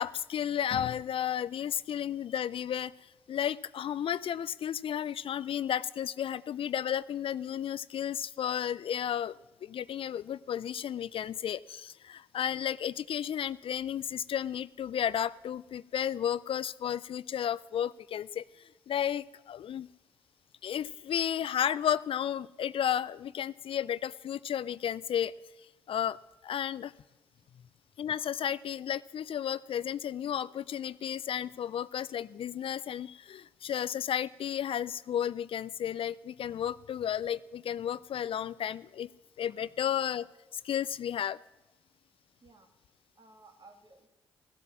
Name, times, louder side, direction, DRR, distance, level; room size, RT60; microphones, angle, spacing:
voice 1, 0.0-2.9 3.3-9.3 9.6-19.9 20.6-25.3 25.9-26.2 26.4-26.9 28.0-39.1 39.4-40.3 40.5-41.4, left 9 dB, 60° left, 19 dB, 0.4 m, -33 dB
voice 2, 42.4-42.7 43.1-44.1, right 3 dB, 45° right, 5 dB, 2.5 m, -57 dB
15.5 x 8.2 x 7.3 m, 1.1 s
supercardioid pair, 50°, 11 cm